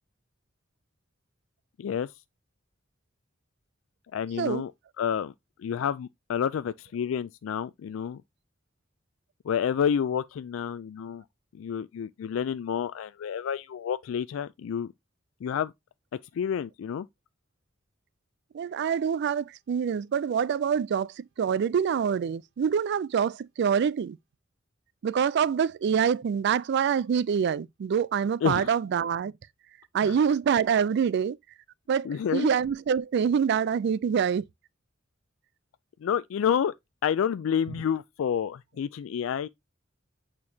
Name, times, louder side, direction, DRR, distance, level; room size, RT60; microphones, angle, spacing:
voice 1, 1.8-2.1 4.1-4.7 5.0-5.3 5.6-8.2 9.4-11.2 11.6-14.9 15.4-15.7 16.3-17.1 28.4-28.7 30.0-30.1 32.0-32.5 36.0-36.7 37.0-39.5, left 8 dB, 80° left, 0.3 m, -29 dB
voice 2, 18.5-24.2 25.0-29.3 29.9-31.4 31.9-34.4, right 7 dB, 60° right, 0.3 m, -26 dB
8.4 x 4.5 x 2.7 m
head